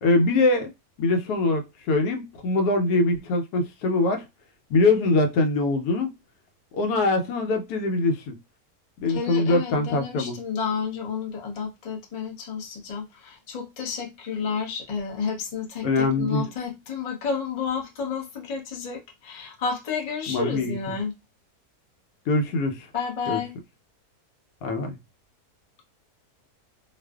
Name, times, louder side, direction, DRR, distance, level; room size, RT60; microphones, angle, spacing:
voice 1, 0.0-0.7 1.0-4.2 4.7-6.1 6.7-8.4 9.0-10.4 15.8-16.5 20.3-20.7 22.3-22.9 23.3-23.4 24.6-25.0, left 2 dB, 85° left, 1.1 m, -23 dB
voice 2, 9.1-21.1 22.9-23.5, left 6 dB, 70° left, 0.3 m, -31 dB
2.4 x 2.4 x 2.3 m
omnidirectional pair, 1.6 m